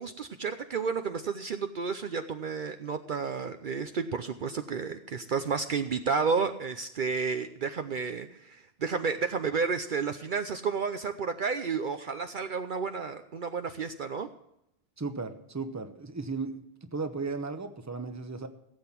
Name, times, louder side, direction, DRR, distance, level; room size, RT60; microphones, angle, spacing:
voice 1, 0.0-14.3, right 5 dB, 55° right, 8 dB, 0.8 m, -31 dB
voice 2, 15.0-18.5, right 4 dB, 15° right, 8 dB, 0.9 m, -35 dB
16.0 x 8.0 x 5.8 m, 0.80 s
omnidirectional pair, 1.0 m